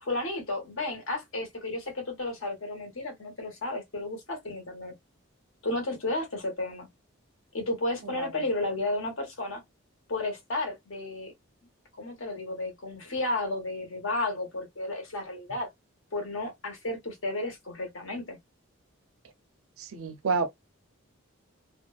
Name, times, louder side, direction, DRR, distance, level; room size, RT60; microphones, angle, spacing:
voice 1, 0.0-4.9 5.6-6.9 7.5-9.6 10.1-11.3 12.0-15.7 16.1-18.4, left 2 dB, 70° left, 1.2 m, -33 dB
voice 2, 19.8-20.5, right 4 dB, 80° right, 0.6 m, -29 dB
2.5 x 2.2 x 2.3 m
head